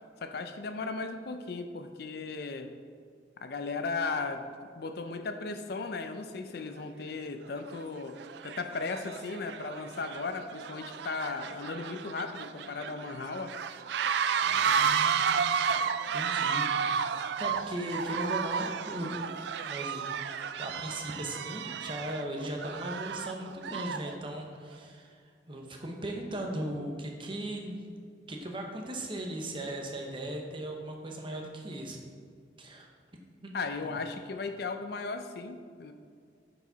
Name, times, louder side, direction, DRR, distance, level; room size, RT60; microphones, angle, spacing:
voice 1, 0.2-2.7 3.4-13.6 14.4-14.6 33.5-35.9, left 4 dB, 55° left, 8 dB, 0.5 m, -36 dB
sound 1, 6.8-6.9 7.6-7.8 8.2-24.1, right 7 dB, 65° right, 0.3 m, -32 dB
voice 2, 14.7-15.6 16.1-19.1 19.6-20.0 20.6-25.2 25.5-27.9 28.3-32.0 32.6-32.9 33.4-33.5 33.8-33.9, right 1 dB, 25° right, 1 dB, 0.9 m, -38 dB
10.0 x 4.9 x 4.0 m, 2.2 s
head